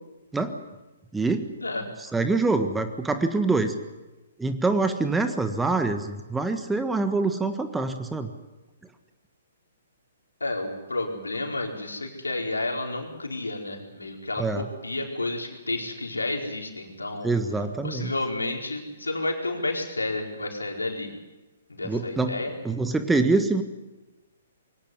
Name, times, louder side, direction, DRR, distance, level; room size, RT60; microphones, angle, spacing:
voice 1, 1.1-1.5 2.0-3.8 4.4-8.3 14.4-14.7 17.2-18.1 21.8-22.4 22.6-23.6, right 3 dB, 5° right, 8 dB, 1.5 m, -25 dB
voice 2, 10.4-17.3 17.8-21.1 21.7-22.5, left 2 dB, 80° left, 2 dB, 4.6 m, -31 dB
23.0 x 17.5 x 9.7 m, 1.1 s
figure-of-eight pair, 125°, 0 cm